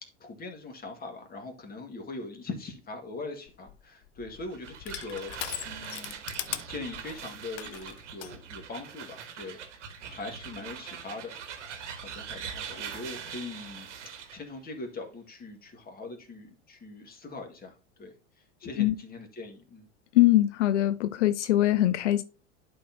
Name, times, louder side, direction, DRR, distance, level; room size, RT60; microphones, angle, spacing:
voice 1, 0.0-5.4 5.7-6.2 6.7-9.6 10.0-11.7 11.9-13.9 14.3-18.1 18.6-19.9, left 3 dB, 25° left, 1.9 m, -41 dB
Crushing, 3.5-8.3, left 12 dB, 45° left, 0.7 m, -40 dB
sound 1, 4.3-14.4, right 7 dB, 80° right, 1.3 m, -42 dB
voice 2, 20.1-22.2, left 14 dB, 80° left, 0.5 m, -22 dB
11.0 x 4.4 x 2.8 m
hypercardioid pair, 95°, 35 cm